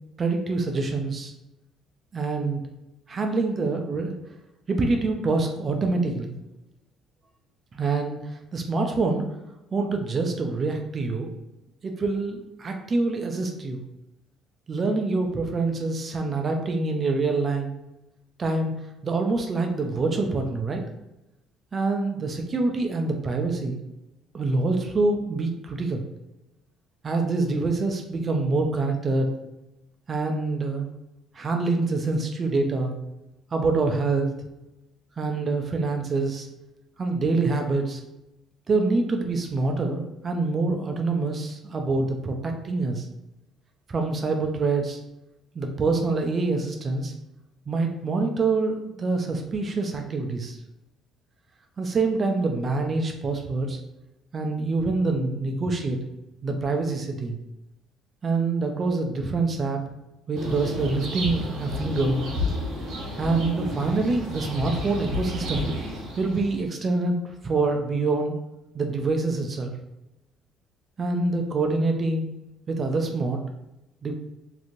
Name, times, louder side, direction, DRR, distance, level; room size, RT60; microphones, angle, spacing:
voice 1, 0.2-1.3 2.1-2.6 3.1-4.1 4.7-6.3 7.7-9.2 9.7-11.3 11.8-13.8 14.7-17.7 18.4-18.7 19.0-20.8 21.7-23.8 24.3-26.0 27.0-29.3 30.1-30.9 31.3-32.9 33.5-34.3 35.2-36.5 37.0-38.0 38.7-43.1 43.9-45.0 45.5-47.1 47.7-50.6 51.8-53.8 54.3-56.0 56.4-57.4 58.2-59.8 60.3-62.3 63.2-65.7 66.2-67.2 67.4-68.4 68.7-69.7 71.0-72.2 72.7-73.4 74.0-74.1, right 3 dB, 35° right, 4 dB, 0.4 m, -25 dB
sound 1, 60.3-66.7, left 1 dB, 70° right, 1.1 m, -31 dB
3.0 x 2.6 x 2.5 m, 0.92 s
cardioid pair, 110°, 0 cm